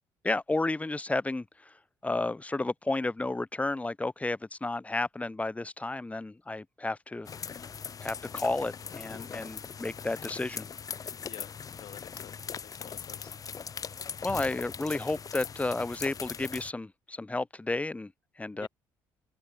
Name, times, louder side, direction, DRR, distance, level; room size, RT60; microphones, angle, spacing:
voice 1, 0.2-7.3 8.0-10.7 14.2-18.7, left 2 dB, 15° left, 1.9 m, -32 dB
sound 1, 7.2-16.7, left 6 dB, 45° left, 2.3 m, -40 dB
voice 2, 11.8-13.3 18.5-18.7, left 13 dB, 70° left, 1.2 m, -49 dB
supercardioid pair, 70°, 9 cm